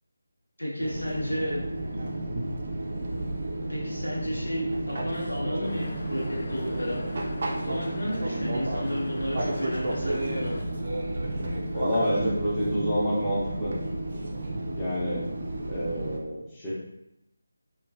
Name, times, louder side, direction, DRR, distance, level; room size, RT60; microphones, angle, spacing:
voice 1, 0.6-1.6 3.7-7.0 7.5-10.6, equal, 75° left, -4 dB, 1.1 m, -32 dB
Fixed-wing aircraft airplane, 0.8-16.2, right 1 dB, 45° right, 0.5 m, -32 dB
sound 1, 5.6-10.6, left 2 dB, 35° left, 0.4 m, -40 dB
voice 2, 11.7-13.7 14.8-15.2 15.7-16.7, equal, 10° left, -10 dB, 0.8 m, -28 dB
3.1 x 2.4 x 2.4 m, 0.85 s
figure-of-eight pair, 160°, 0 cm